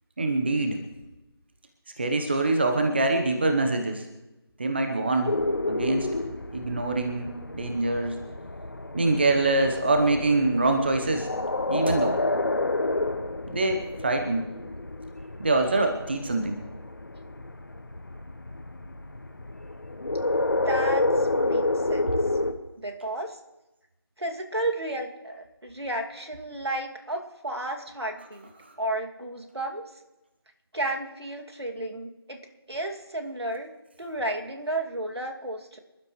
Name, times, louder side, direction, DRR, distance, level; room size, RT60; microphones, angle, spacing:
voice 1, 0.2-0.8 2.0-4.0 4.6-5.3 5.7-6.1 6.5-8.2 8.9-11.3 11.7-12.2 13.5-14.5 15.4-16.6, right 2 dB, 25° right, 5 dB, 1.0 m, -24 dB
sound 1, 5.3-22.5, left 2 dB, 50° left, 1.6 m, -29 dB
voice 2, 20.6-22.1 22.8-23.4 24.2-28.5 28.8-29.8 30.7-35.8, right 1 dB, 80° right, 2 dB, 2.4 m, -33 dB
26.0 x 12.5 x 3.2 m, 0.99 s
figure-of-eight pair, 170°, 13 cm